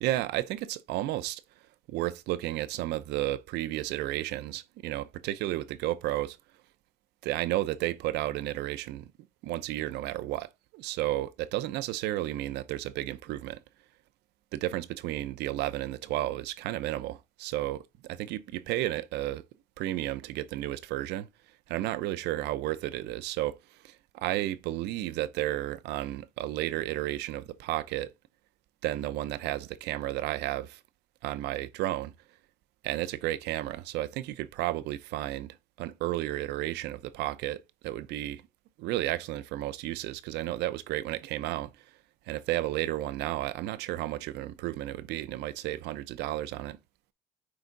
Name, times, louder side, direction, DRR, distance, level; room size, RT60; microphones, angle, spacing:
voice 1, 0.0-1.4 1.9-6.4 7.2-9.1 9.4-13.6 14.5-17.8 18.1-19.4 19.8-21.3 21.7-23.6 23.8-28.1 28.8-30.8 31.2-32.1 32.8-38.4 38.8-41.7 42.3-46.8, right 15 dB, 85° right, 0.7 m, -32 dB
9.7 x 3.6 x 3.9 m
cardioid pair, 110°, 17 cm